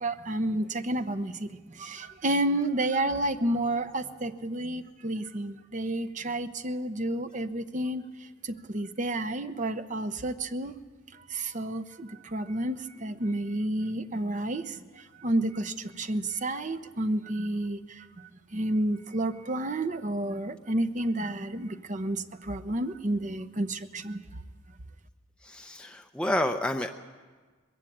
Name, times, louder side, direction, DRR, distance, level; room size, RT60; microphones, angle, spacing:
voice 1, 0.0-1.5 1.8-8.0 8.4-10.7 11.3-14.8 15.2-18.0 18.5-24.2, right 1 dB, 40° right, 9 dB, 0.8 m, -30 dB
voice 2, 25.4-26.9, left 1 dB, 5° left, 4 dB, 0.6 m, -29 dB
21.0 x 15.5 x 8.7 m, 1.4 s
head